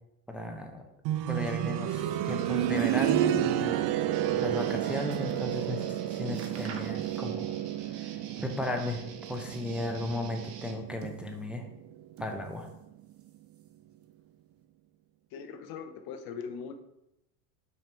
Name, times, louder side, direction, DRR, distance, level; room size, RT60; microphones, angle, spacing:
voice 1, 0.3-0.8 1.3-4.0 4.4-7.6 7.9-8.2 8.4-9.0 9.3-11.7 12.2-12.7, left 1 dB, ahead, 3 dB, 0.6 m, -35 dB
sound 1, 1.1-11.8 13.2-13.3, right 12 dB, 50° right, 0.6 m, -31 dB
Guitar, 4.1-10.8, right 6 dB, 70° right, 1.2 m, -48 dB
sound 2, 4.4-5.5 5.9-6.0 6.2-7.6 7.8-8.8 9.1-10.0 10.6-11.7 12.1-12.8 13.1-13.9 14.6-14.7, right 5 dB, 30° right, 0.9 m, -48 dB
voice 2, 15.3-16.8, left 6 dB, 50° left, 8 dB, 0.8 m, -40 dB
5.8 x 4.5 x 4.6 m, 0.86 s
hypercardioid pair, 95°, 48 cm